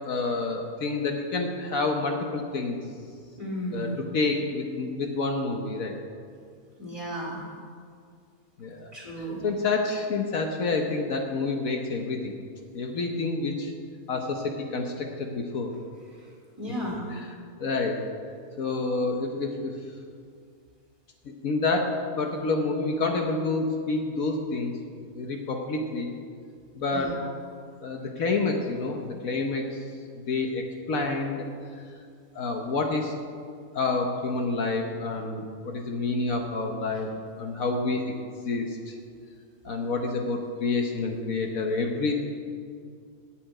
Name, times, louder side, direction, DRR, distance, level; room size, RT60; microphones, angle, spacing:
voice 1, 0.0-2.8 3.7-3.9 4.1-6.0 8.6-8.9 9.4-12.3 12.7-13.7 14.1-15.7 17.1-17.3 17.6-18.0 18.6-19.7 21.4-24.7 25.1-26.1 26.8-27.2 27.8-29.8 30.3-31.5 32.3-33.2 33.7-37.1 37.4-38.1 38.4-38.9 39.6-42.1, left 3 dB, 65° left, 2 dB, 1.3 m, -28 dB
voice 2, 3.4-4.0 6.8-7.4 8.9-9.4 16.2-17.0 26.9-27.1, equal, 20° right, -4 dB, 2.9 m, -34 dB
8.5 x 7.7 x 9.0 m, 2.2 s
omnidirectional pair, 1.6 m